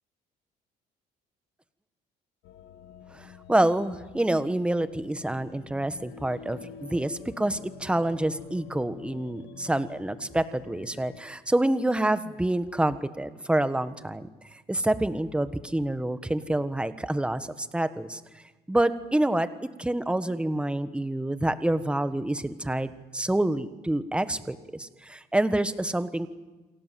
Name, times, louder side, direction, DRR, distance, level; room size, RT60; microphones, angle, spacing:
sound 1, 2.4-11.2, left 7 dB, 90° left, 1.7 m, -48 dB
voice 1, 3.1-14.3 14.7-18.2 18.7-19.5 19.8-26.3, right 1 dB, 5° right, 12 dB, 1.4 m, -27 dB
29.0 x 24.5 x 7.7 m, 1.2 s
cardioid pair, 110°, 17 cm